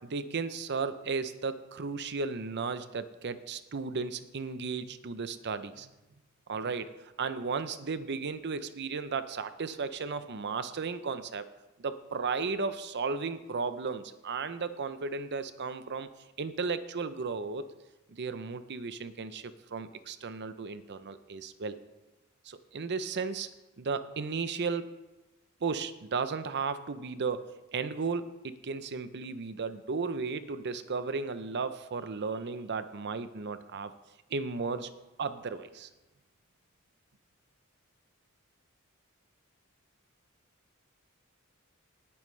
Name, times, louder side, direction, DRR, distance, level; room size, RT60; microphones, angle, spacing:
voice 1, 0.0-5.9 6.5-11.5 11.8-16.1 16.4-17.7 18.1-21.8 22.4-23.5 23.8-24.9 25.6-33.9 34.3-34.9 35.2-35.9, right 4 dB, 55° right, 12 dB, 0.6 m, -35 dB
18.5 x 8.7 x 3.3 m, 1.0 s
head